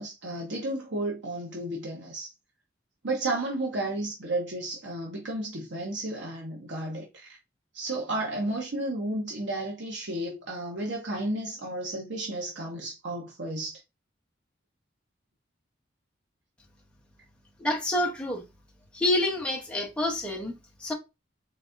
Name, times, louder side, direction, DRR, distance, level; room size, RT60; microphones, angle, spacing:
voice 1, 0.0-2.3 3.0-7.1 7.7-13.8, right 1 dB, 70° right, 1.0 m, -32 dB
voice 2, 17.6-18.4 18.9-20.9, left 1 dB, 5° left, 0.9 m, -28 dB
4.0 x 3.4 x 2.5 m
head